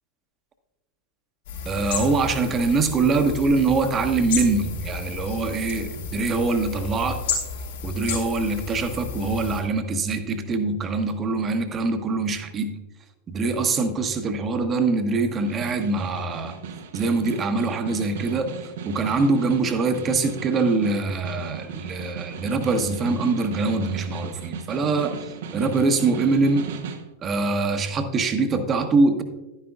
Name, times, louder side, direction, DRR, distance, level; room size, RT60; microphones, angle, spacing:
sound 1, 1.5-9.6, left 5 dB, 60° left, 3.1 m, -32 dB
voice 1, 1.6-7.4 7.8-12.8 13.3-16.6 16.9-18.5 18.8-25.2 25.5-26.7 27.2-29.2, right 3 dB, 25° right, 8 dB, 0.9 m, -23 dB
Snare drum, 15.3-27.1, right 7 dB, 55° right, 0.7 m, -37 dB
11.5 x 9.8 x 2.4 m, 1.1 s
figure-of-eight pair, 90°, 0 cm